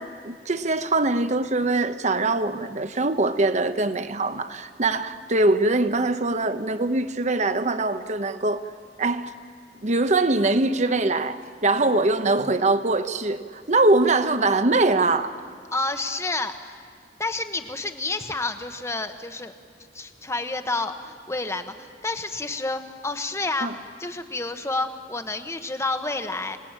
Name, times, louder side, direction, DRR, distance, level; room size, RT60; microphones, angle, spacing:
voice 1, 0.0-8.6 9.0-9.3 9.8-15.3 23.6-23.7, right 2 dB, 40° right, 1.0 m, -22 dB
voice 2, 15.7-16.8 17.2-19.5 19.9-23.7 24.0-26.6, left 2 dB, 15° left, 1.2 m, -29 dB
27.0 x 19.0 x 9.0 m
head